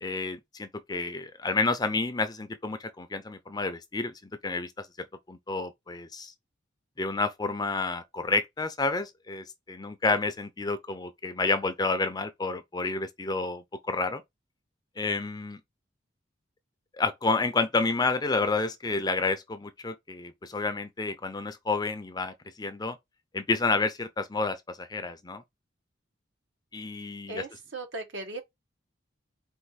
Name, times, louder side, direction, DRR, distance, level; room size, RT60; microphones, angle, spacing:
voice 1, 0.0-4.1 4.4-4.9 5.3-6.3 7.0-14.2 15.0-15.6 17.0-23.0 23.3-25.4 26.7-27.4, left 3 dB, 20° left, 0.5 m, -30 dB
voice 2, 27.3-28.4, right 2 dB, 70° right, 1.3 m, -37 dB
4.5 x 2.5 x 4.1 m
head